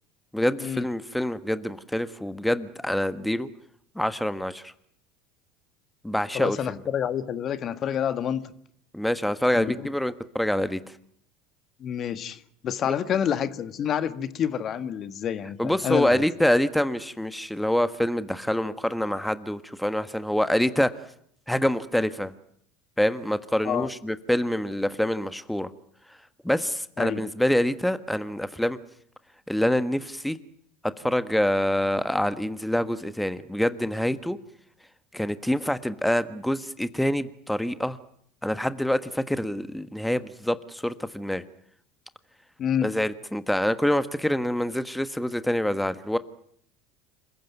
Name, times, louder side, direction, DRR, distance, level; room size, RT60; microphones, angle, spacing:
voice 1, 0.3-3.5 3.9-4.7 6.0-6.6 8.9-10.8 12.8-12.9 15.6-20.9 21.5-22.3 23.0-25.7 26.4-28.8 29.5-30.4 31.0-34.4 35.1-38.0 38.4-41.4 42.8-46.2, left 1 dB, 5° left, 1.4 m, -26 dB
voice 2, 6.3-8.4 9.5-9.9 11.8-16.2 23.6-23.9 27.0-27.2 42.6-42.9, left 9 dB, 45° left, 1.7 m, -28 dB
27.5 x 15.5 x 9.4 m
hypercardioid pair, 80°, 0 cm